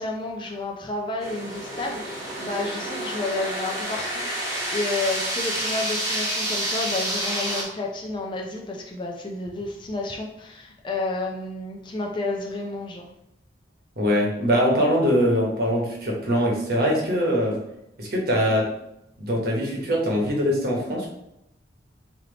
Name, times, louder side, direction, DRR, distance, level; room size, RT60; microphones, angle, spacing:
voice 1, 0.0-4.4 4.7-13.0, left 2 dB, 25° left, 0 dB, 0.4 m, -31 dB
sound 1, 1.2-7.6, right 1 dB, 20° right, 1.0 m, -29 dB
voice 2, 14.0-17.6 18.0-18.6 19.2-21.1, equal, 55° right, -2 dB, 1.1 m, -22 dB
3.4 x 2.8 x 3.9 m, 0.82 s
head